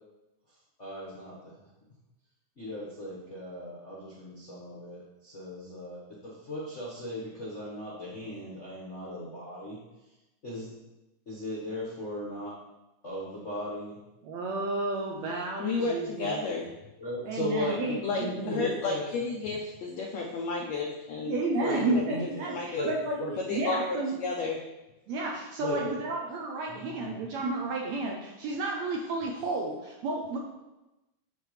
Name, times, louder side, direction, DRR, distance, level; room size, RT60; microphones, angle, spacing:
voice 1, 0.8-1.3 2.6-9.8 10.4-10.7 11.3-12.5 13.0-13.9 17.0-19.1 21.6-22.4 22.7-22.9 23.2-23.3 25.6-25.8 26.7-27.4, left 1 dB, 50° left, -6 dB, 0.8 m, -37 dB
voice 2, 14.2-16.4 17.2-18.8 21.2-23.2 23.5-24.2 25.1-30.4, right 2 dB, 80° right, 0 dB, 1.6 m, -32 dB
voice 3, 15.6-16.7 18.0-21.7 21.9-22.0 22.5-22.9 23.5-24.6, left 4 dB, 80° left, -1 dB, 1.5 m, -32 dB
9.6 x 5.0 x 3.2 m, 0.99 s
omnidirectional pair, 3.8 m